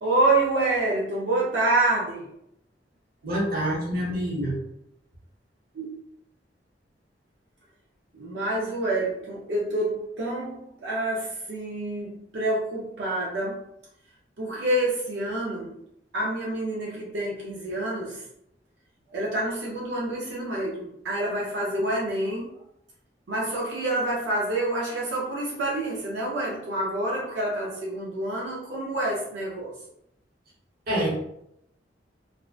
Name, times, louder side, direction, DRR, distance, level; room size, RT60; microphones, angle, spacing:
voice 1, 0.0-2.3 5.7-5.9 8.1-13.6 14.4-15.8 16.1-18.2 19.1-22.5 23.3-29.7, right 2 dB, 85° right, -5 dB, 0.5 m, -27 dB
voice 2, 3.2-4.6 30.9-31.2, equal, 55° right, -4 dB, 0.9 m, -26 dB
2.5 x 2.1 x 2.3 m, 0.76 s
head